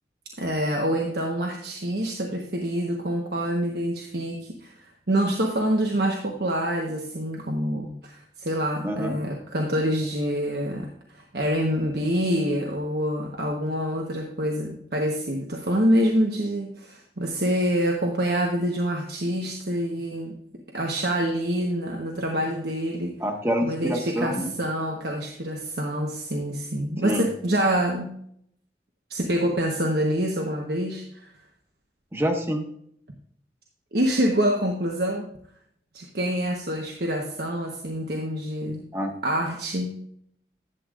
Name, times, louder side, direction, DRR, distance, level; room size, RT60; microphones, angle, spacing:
voice 1, 0.4-20.3 20.7-23.2 23.6-28.1 29.1-31.3 33.9-35.3 35.9-38.8 39.2-39.9, equal, 65° right, 1 dB, 1.1 m, -26 dB
voice 2, 8.8-9.2 23.2-24.5 27.0-27.3 32.1-32.6 38.9-39.1, equal, 15° right, 3 dB, 1.3 m, -26 dB
11.5 x 8.2 x 2.5 m, 0.67 s
head